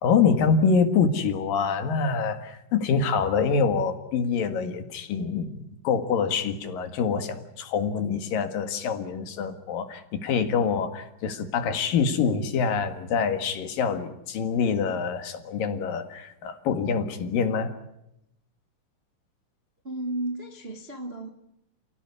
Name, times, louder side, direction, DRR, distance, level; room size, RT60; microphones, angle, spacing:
voice 1, 0.0-17.7, left 5 dB, 80° left, 3.6 m, -25 dB
voice 2, 19.8-21.3, right 1 dB, 50° right, 0.7 m, -33 dB
29.5 x 16.5 x 9.8 m
omnidirectional pair, 4.0 m